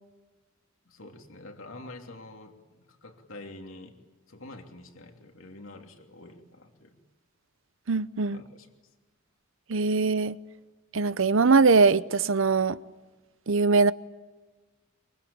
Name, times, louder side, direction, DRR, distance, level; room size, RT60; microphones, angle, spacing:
voice 1, 0.8-4.0 4.3-7.0 8.3-8.7, left 2 dB, 70° left, 3.1 m, -46 dB
voice 2, 7.9-8.4 9.7-10.4 10.9-12.8 13.5-13.9, right 4 dB, 65° right, 0.8 m, -22 dB
24.5 x 24.0 x 8.8 m
head